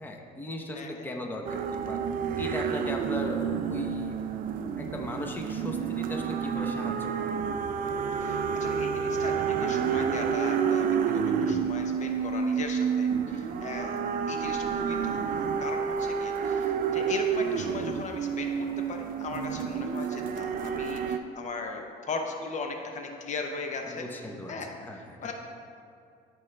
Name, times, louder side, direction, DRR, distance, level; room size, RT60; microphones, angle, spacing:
voice 1, 0.0-2.0 2.4-3.4 3.7-4.2 4.8-7.1 13.4-13.5 23.8-24.6 24.8-25.3, left 1 dB, 10° left, 1 dB, 0.8 m, -37 dB
voice 2, 0.7-1.1 8.1-14.0 14.3-24.1 24.5-25.3, left 3 dB, 45° left, 3 dB, 0.8 m, -38 dB
sound 1, 1.4-21.2, right 7 dB, 55° right, 0.5 m, -29 dB
13.5 x 4.6 x 3.3 m, 2.4 s
cardioid pair, 110°, 17 cm